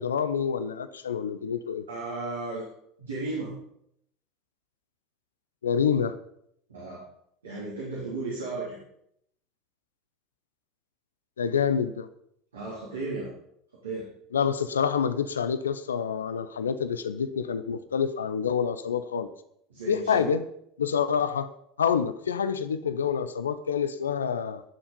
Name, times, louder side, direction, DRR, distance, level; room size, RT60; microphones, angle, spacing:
voice 1, 0.0-1.8 5.6-6.1 11.4-12.1 14.3-19.3 19.9-20.5 20.8-21.5 21.8-24.6, left 7 dB, 80° left, 0.8 m, -27 dB
voice 2, 1.9-2.7 3.0-3.5 6.7-7.0 7.4-8.8 12.5-13.3 13.8-14.1 19.7-20.3, right 3 dB, 80° right, 3.8 m, -34 dB
18.5 x 7.2 x 5.3 m
figure-of-eight pair, 70°, 0 cm